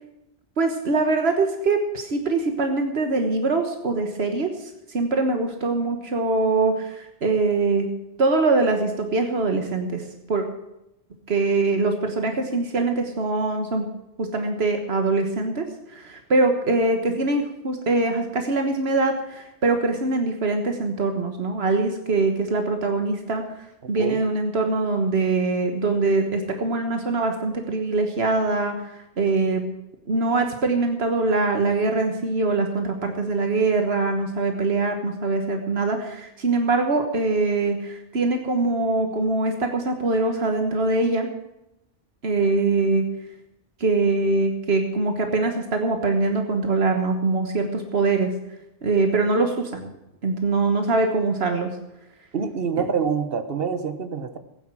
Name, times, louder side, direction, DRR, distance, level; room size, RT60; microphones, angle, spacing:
voice 1, 0.6-7.9 8.2-10.4 11.3-13.9 14.2-23.4 23.9-29.6 30.1-41.3 42.2-43.0 43.8-48.3 48.8-49.8 50.2-51.7 52.8-52.9, right 3 dB, 85° right, 5 dB, 1.6 m, -23 dB
voice 2, 52.3-54.4, right 6 dB, 65° right, 9 dB, 1.4 m, -26 dB
16.0 x 9.4 x 6.3 m, 0.88 s
omnidirectional pair, 1.0 m